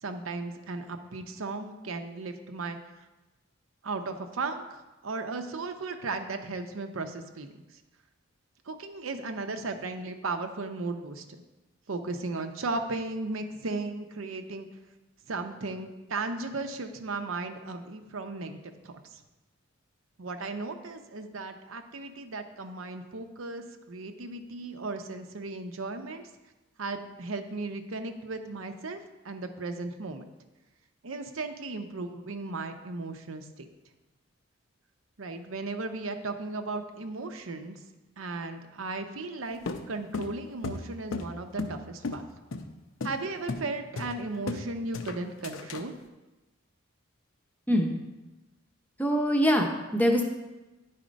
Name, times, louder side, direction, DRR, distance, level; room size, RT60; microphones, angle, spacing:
voice 1, 0.0-2.8 3.8-7.5 8.7-11.4 11.9-14.7 15.3-19.2 20.2-26.2 26.8-29.0 29.2-30.2 31.0-33.7 35.2-37.8 38.2-39.6 39.9-42.2 43.0-45.9, right 3 dB, 80° right, 7 dB, 0.7 m, -36 dB
sound 1, 39.7-41.8 42.0-42.2 42.5-42.7 43.0-43.2 43.5-43.7 44.0-44.7 44.9-45.9, left 3 dB, 70° left, 0.6 m, -34 dB
voice 2, 47.7-48.0 49.0-50.3, equal, 10° left, 2 dB, 0.7 m, -24 dB
9.8 x 4.3 x 5.1 m, 1.1 s
head